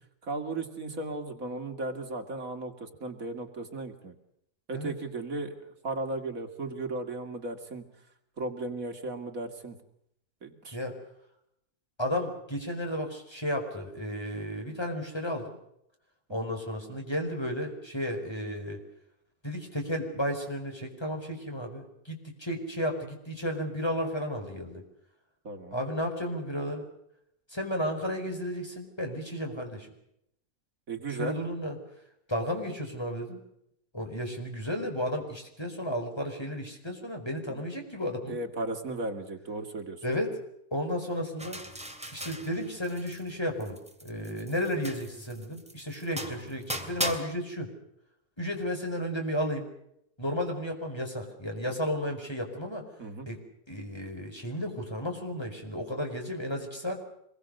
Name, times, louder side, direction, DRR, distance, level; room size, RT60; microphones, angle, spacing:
voice 1, 0.2-4.1 4.7-7.8 8.4-9.8 10.4-10.8 16.4-16.5 25.4-25.8 30.9-31.4 37.5-37.6 38.3-40.0 53.0-53.3, right 2 dB, 60° right, 5 dB, 2.9 m, -36 dB
voice 2, 12.0-15.5 16.3-18.8 19.4-24.8 25.7-26.8 27.5-29.9 31.1-31.8 32.3-33.4 33.9-38.4 40.0-40.4 40.7-41.6 42.1-47.7 48.4-49.7 50.2-52.9 53.3-57.0, equal, 15° left, 3 dB, 5.1 m, -33 dB
sound 1, 41.4-43.3 43.6-47.2, right 1 dB, 5° right, 2.7 m, -38 dB
25.5 x 22.5 x 6.6 m, 0.76 s
omnidirectional pair, 1.6 m